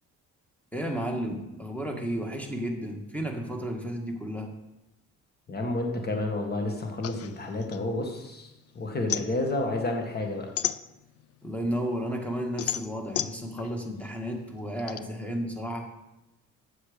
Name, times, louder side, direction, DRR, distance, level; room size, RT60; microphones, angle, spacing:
voice 1, 0.7-4.5 11.4-15.9, equal, 5° left, 2 dB, 1.7 m, -32 dB
voice 2, 5.5-8.5 8.8-10.5, left 2 dB, 35° left, 3 dB, 1.8 m, -30 dB
sound 1, 7.0-8.5 8.8-11.4 11.8-15.0, left 10 dB, 55° left, 0.5 m, -34 dB
8.1 x 7.1 x 5.1 m, 0.95 s
cardioid pair, 90°, 30 cm